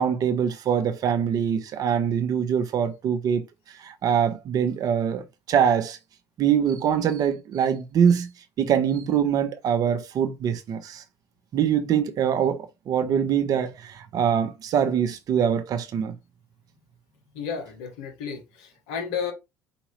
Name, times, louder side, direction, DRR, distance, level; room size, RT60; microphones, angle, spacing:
voice 1, 0.0-3.4 3.8-6.0 6.4-8.3 8.6-11.0 11.5-16.1, right 8 dB, 50° right, 0.9 m, -23 dB
voice 2, 17.3-19.3, left 6 dB, 70° left, 1.6 m, -32 dB
5.1 x 2.9 x 3.2 m
hypercardioid pair, 60°, 8 cm